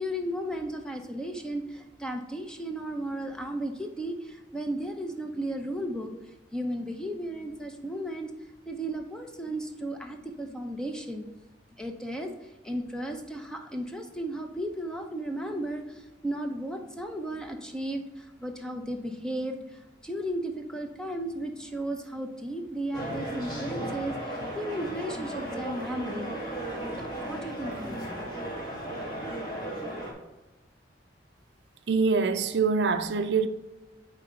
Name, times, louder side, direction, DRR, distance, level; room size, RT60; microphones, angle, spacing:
voice 1, 0.0-8.3 8.7-11.2 11.7-26.4 26.9-28.4, right 1 dB, 5° left, 0.7 m, -35 dB
sound 1, 22.9-30.1, right 1 dB, 25° left, 1.9 m, -35 dB
voice 2, 31.9-33.5, right 5 dB, 65° right, 0.4 m, -24 dB
9.0 x 3.7 x 4.4 m
head